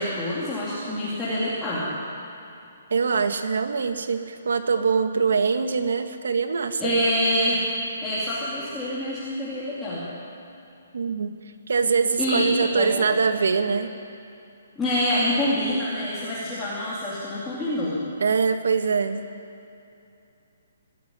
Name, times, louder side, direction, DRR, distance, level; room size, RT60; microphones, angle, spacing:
voice 1, 0.0-1.9 6.8-7.6 8.0-10.1 12.2-12.9 14.8-18.0, left 1 dB, 5° left, -11 dB, 2.8 m, -26 dB
voice 2, 2.9-6.9 10.9-11.3 11.7-13.9 18.2-19.2, right 5 dB, 80° right, 7 dB, 1.9 m, -23 dB
22.5 x 13.5 x 9.8 m, 2.7 s
hypercardioid pair, 180°, 0 cm